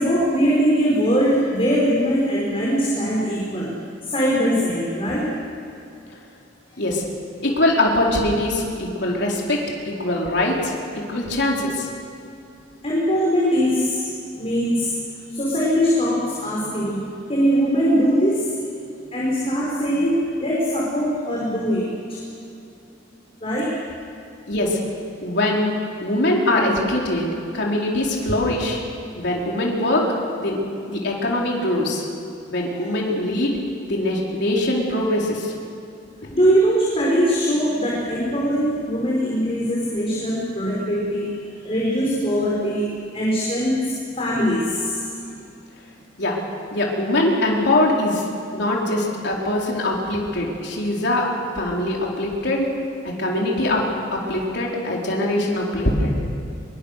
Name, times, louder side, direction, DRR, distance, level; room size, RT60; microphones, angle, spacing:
voice 1, 0.0-3.7 4.0-5.3 10.4-10.5 12.8-14.1 14.4-15.0 15.3-18.6 19.1-21.9 23.4-23.8 32.7-32.8 36.3-41.3 41.6-45.1, equal, 30° left, -5 dB, 4.9 m, -21 dB
voice 2, 7.4-9.6 10.0-10.7 11.1-11.9 24.5-24.8 25.2-25.7 26.0-28.8 29.2-30.0 30.4-30.6 30.9-32.0 32.5-33.5 33.8-35.5 46.2-46.4 46.7-48.3 48.5-51.2 51.6-52.7 53.0-53.8 54.3-56.2, left 1 dB, 65° left, -2 dB, 4.2 m, -22 dB
24.5 x 23.0 x 6.7 m, 2.7 s
head